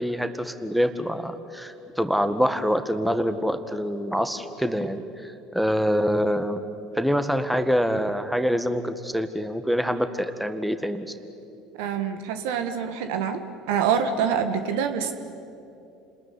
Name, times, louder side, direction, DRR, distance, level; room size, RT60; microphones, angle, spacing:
voice 1, 0.0-6.6 6.9-11.1, equal, 5° right, 9 dB, 1.8 m, -25 dB
voice 2, 11.8-13.4 13.7-15.1, right 7 dB, 70° right, 8 dB, 1.7 m, -25 dB
29.5 x 20.5 x 9.7 m, 2.7 s
hypercardioid pair, 65°, 0 cm